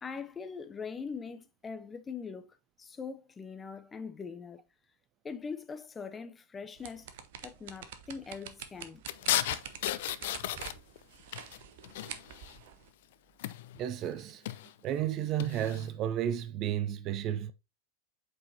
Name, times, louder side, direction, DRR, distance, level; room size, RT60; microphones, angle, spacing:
voice 1, 0.0-4.6 5.2-7.1 7.4-9.0, left 5 dB, 15° left, 0.7 m, -42 dB
sound 1, 6.8-12.9, right 9 dB, 55° right, 0.8 m, -47 dB
sound 2, 9.1-11.0 11.3-12.6 13.4-13.9 14.3-14.7 15.4-15.9, left 13 dB, 55° left, 0.4 m, -34 dB
voice 2, 13.8-14.4 14.8-17.5, right 10 dB, 35° right, 0.4 m, -32 dB
8.4 x 4.6 x 2.8 m
figure-of-eight pair, 90°, 0 cm